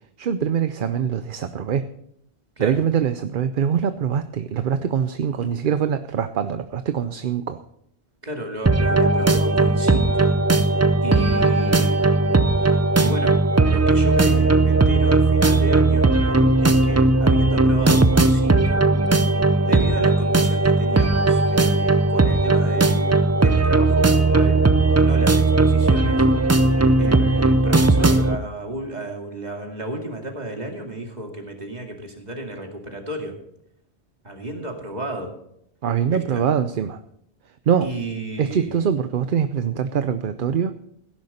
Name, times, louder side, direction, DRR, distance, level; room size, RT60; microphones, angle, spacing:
voice 1, 0.2-1.9 2.6-7.6 35.8-37.0 37.7-37.9 38.4-40.7, right 8 dB, 55° right, 10 dB, 0.8 m, -23 dB
voice 2, 8.2-10.3 10.6-10.8 11.0-12.2 13.0-18.9 19.2-19.3 19.6-24.6 25.0-26.3 27.0-33.3 34.2-35.3 36.1-36.4 37.8-38.8, right 1 dB, 40° right, 2 dB, 2.6 m, -33 dB
sound 1, 8.7-28.4, right 2 dB, 20° right, 0.4 m, -17 dB
17.0 x 10.5 x 4.3 m, 0.72 s
omnidirectional pair, 1.1 m